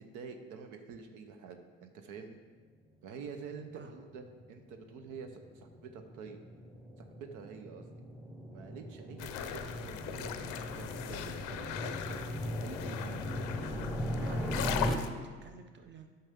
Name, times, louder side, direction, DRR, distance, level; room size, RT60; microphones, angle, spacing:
voice 1, 0.0-2.4 3.0-6.4 7.0-8.1 8.5-12.3 12.6-13.7, right 5 dB, 80° right, 6 dB, 0.7 m, -48 dB
sound 1, 3.8-15.0, equal, ahead, 0.9 m, -39 dB
sound 2, 9.2-15.1, left 10 dB, 90° left, 0.5 m, -39 dB
voice 2, 14.2-16.1, right 5 dB, 40° right, 6 dB, 0.8 m, -50 dB
8.8 x 5.6 x 3.6 m, 1.5 s
supercardioid pair, 85°, 30 cm